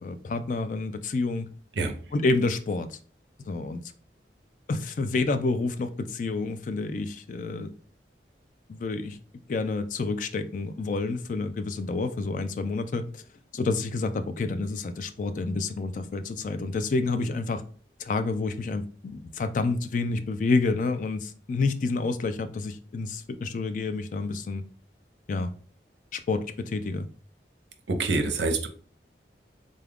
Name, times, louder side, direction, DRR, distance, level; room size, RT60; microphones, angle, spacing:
voice 1, 0.0-1.5 2.1-3.0 3.4-3.8 4.7-7.7 8.7-9.2 9.5-13.2 13.5-17.6 18.0-24.6 25.3-25.5 26.1-27.1, left 3 dB, 45° left, 10 dB, 0.3 m, -29 dB
voice 2, 27.9-28.7, right 3 dB, 85° right, 7 dB, 0.6 m, -26 dB
3.8 x 2.4 x 3.5 m, 0.42 s
head